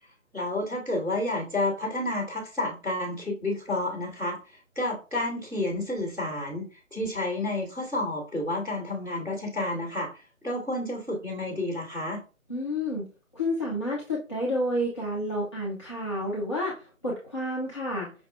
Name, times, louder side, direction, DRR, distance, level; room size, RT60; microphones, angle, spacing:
voice 1, 0.3-4.4 4.7-6.6 6.9-10.1 10.4-12.2, left 2 dB, 5° right, -13 dB, 1.1 m, -30 dB
voice 2, 12.5-13.1 13.3-18.1, left 1 dB, 20° left, -6 dB, 0.6 m, -30 dB
5.7 x 2.3 x 2.3 m, 0.34 s
figure-of-eight pair, 155°, 41 cm